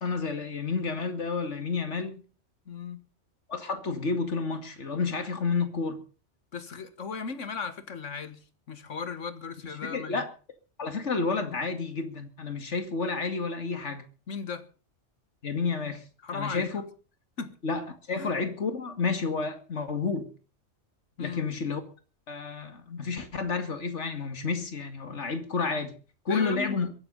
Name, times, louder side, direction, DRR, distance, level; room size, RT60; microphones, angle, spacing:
voice 1, 0.0-2.2 3.5-6.0 9.6-10.3 10.8-14.0 15.4-16.0 16.3-16.8 17.6-20.3 21.2-21.8 22.3-25.9 26.3-26.9, left 4 dB, 70° left, 2.6 m, -30 dB
voice 2, 2.7-3.1 6.5-10.3 14.3-14.7 16.2-16.7 17.4-17.6 18.2-18.3 21.2-21.5 26.3-26.9, left 5 dB, 90° left, 1.9 m, -37 dB
23.5 x 8.7 x 5.5 m
omnidirectional pair, 1.2 m